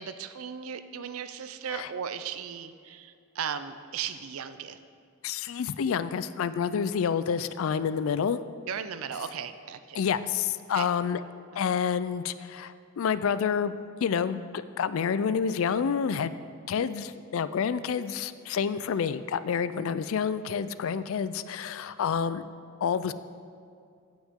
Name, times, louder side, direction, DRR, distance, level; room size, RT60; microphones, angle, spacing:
voice 1, 0.0-4.8 8.7-10.0 10.7-10.9 11.5-11.7, right 7 dB, 75° right, 11 dB, 0.5 m, -36 dB
voice 2, 5.2-8.4 9.9-11.2 11.6-16.3 16.7-22.4 22.8-23.1, left 7 dB, 70° left, 14 dB, 0.4 m, -28 dB
15.0 x 6.2 x 3.6 m, 2.4 s
head